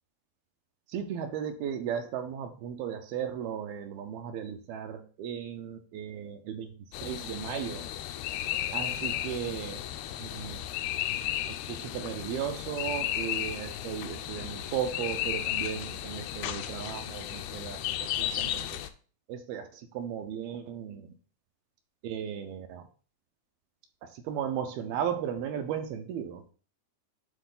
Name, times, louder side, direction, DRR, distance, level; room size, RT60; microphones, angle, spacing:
voice 1, 0.9-6.7 7.0-7.9 8.7-9.8 10.2-10.6 11.5-18.8 19.3-21.1 22.0-22.9 24.0-26.4, right 8 dB, 80° right, 6 dB, 2.4 m, -36 dB
sound 1, 6.9-18.9, left 12 dB, 85° left, 2.7 m, -34 dB
9.3 x 3.7 x 3.8 m, 0.39 s
omnidirectional pair, 4.7 m